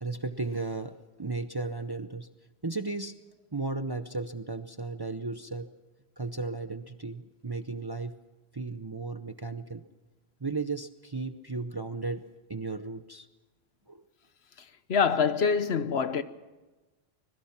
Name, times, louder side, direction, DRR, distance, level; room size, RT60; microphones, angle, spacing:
voice 1, 0.0-2.3 2.6-3.1 3.5-5.7 6.2-8.2 8.5-9.8 10.4-12.2 12.5-13.3 13.9-14.0, right 3 dB, 25° right, 0.7 m, -35 dB
voice 2, 14.9-16.2, left 6 dB, 80° left, 1.3 m, -25 dB
25.5 x 21.5 x 5.9 m
omnidirectional pair, 1.1 m